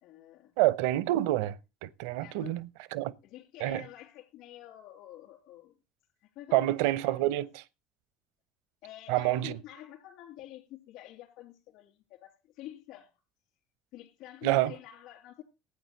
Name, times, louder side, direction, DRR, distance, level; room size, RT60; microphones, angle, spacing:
voice 1, 0.0-0.5 2.2-2.6 3.2-5.7 6.4-7.3 8.8-13.1 13.9-15.4, left 13 dB, 65° left, 3.6 m, -48 dB
voice 2, 0.6-3.1 3.6-3.8 6.5-7.6 9.1-9.6 14.4-14.7, right 16 dB, 75° right, 0.7 m, -28 dB
16.0 x 9.3 x 4.0 m
hypercardioid pair, 60°, 0 cm